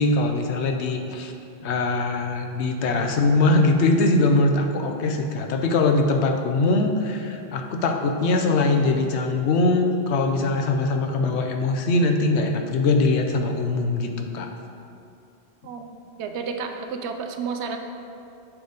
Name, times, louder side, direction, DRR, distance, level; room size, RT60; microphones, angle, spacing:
voice 1, 0.0-1.3 1.6-14.5, left 2 dB, 85° left, 4 dB, 1.0 m, -22 dB
voice 2, 15.6-17.8, right 5 dB, 90° right, 5 dB, 0.9 m, -31 dB
7.4 x 5.0 x 4.0 m, 2.6 s
omnidirectional pair, 1.1 m